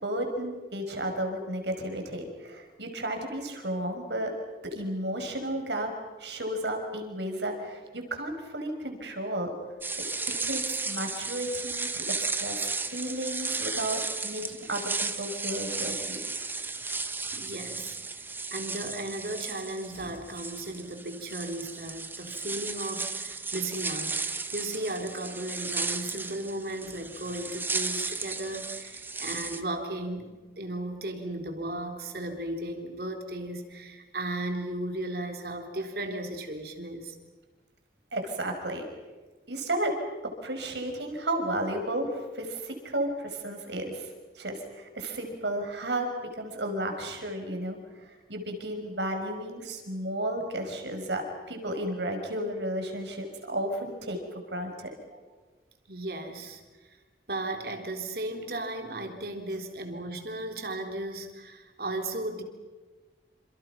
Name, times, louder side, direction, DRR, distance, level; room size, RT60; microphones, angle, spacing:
voice 1, 0.0-4.3 4.6-5.9 6.2-9.5 10.4-16.2 38.1-38.8 39.5-39.9 40.4-44.1 44.4-46.1 46.4-47.8 48.3-51.2 51.5-54.2 54.5-54.9, right 1 dB, 80° right, 4 dB, 5.6 m, -33 dB
sound 1, 9.8-29.6, right 3 dB, 10° right, 1.2 m, -34 dB
voice 2, 17.3-18.0 18.5-24.2 24.5-37.2 55.1-55.2 55.9-56.6 57.3-62.4, right 1 dB, 60° right, 4 dB, 3.7 m, -35 dB
28.5 x 28.0 x 6.0 m, 1.3 s
head